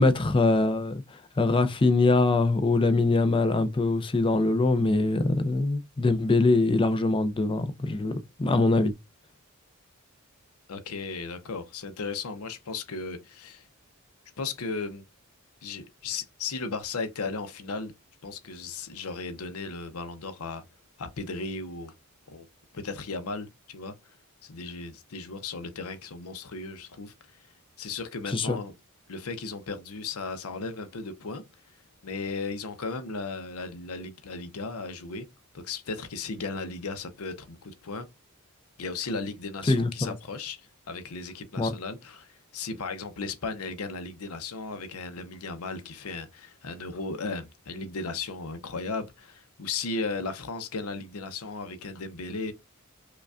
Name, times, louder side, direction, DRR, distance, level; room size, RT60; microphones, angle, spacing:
voice 1, 0.0-8.1 8.4-8.9 28.3-28.6 39.7-40.2 41.6-41.7, left 3 dB, 25° left, 0.4 m, -23 dB
voice 2, 10.7-13.7 14.4-15.0 15.6-17.9 18.2-20.6 21.0-21.9 22.3-22.5 22.7-23.9 24.4-27.1 27.8-28.7 29.1-31.4 32.0-35.3 35.5-38.1 38.8-52.5, left 4 dB, 80° left, 0.6 m, -36 dB
4.9 x 2.3 x 2.4 m
head